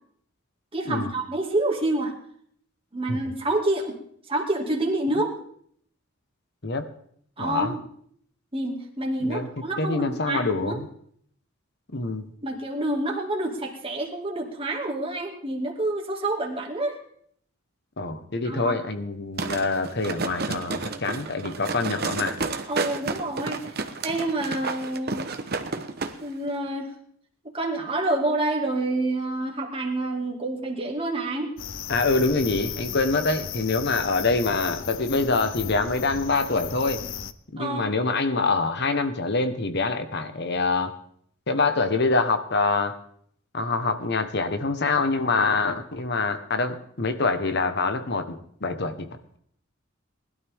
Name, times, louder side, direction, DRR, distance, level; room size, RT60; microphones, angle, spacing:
voice 1, 0.7-2.1 2.9-4.0 4.3-5.3 7.4-7.8 8.5-10.8 12.4-17.0 18.4-18.8 22.7-23.7 24.0-25.2 26.2-26.9 27.5-31.5 37.6-37.9, right 2 dB, 25° right, 0 dB, 2.3 m, -28 dB
voice 2, 7.4-7.7 9.2-9.5 9.8-10.9 11.9-12.3 18.0-22.4 31.9-37.0 37.5-40.9 41.5-42.9 43.5-49.1, left 3 dB, 55° left, 8 dB, 1.3 m, -25 dB
sound 1, 19.4-26.1 26.5-26.6, right 3 dB, 50° right, 1.1 m, -31 dB
sound 2, 31.6-37.3, left 8 dB, 70° left, 0.7 m, -35 dB
20.0 x 12.0 x 3.7 m, 0.65 s
head